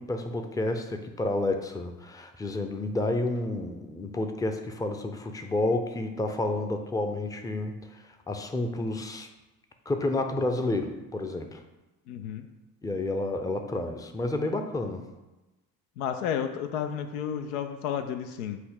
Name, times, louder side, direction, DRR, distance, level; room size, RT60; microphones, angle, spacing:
voice 1, 0.0-9.3 9.9-11.6 12.8-15.1, left 2 dB, 10° left, 5 dB, 0.6 m, -30 dB
voice 2, 12.1-12.5 16.0-18.6, left 8 dB, 65° left, 7 dB, 0.6 m, -32 dB
7.8 x 2.8 x 4.9 m, 1.1 s
figure-of-eight pair, 55°, 47 cm